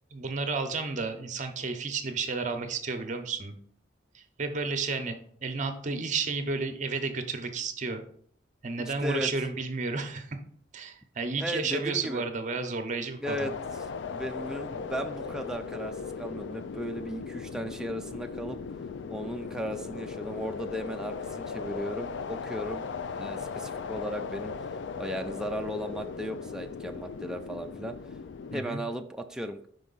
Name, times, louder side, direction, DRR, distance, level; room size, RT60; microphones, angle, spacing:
voice 1, 0.1-3.6 4.1-5.2 5.4-8.0 8.6-10.4 10.7-13.5 28.5-28.8, right 4 dB, 45° right, 8 dB, 0.7 m, -32 dB
voice 2, 8.9-9.3 11.4-12.2 13.2-13.5 14.1-18.6 19.1-22.8 23.1-24.5 25.0-28.0 28.5-29.8, equal, 5° right, 4 dB, 0.4 m, -36 dB
sound 1, 13.2-28.6, left 5 dB, 70° left, 0.4 m, -38 dB
5.3 x 4.7 x 3.9 m, 0.63 s
head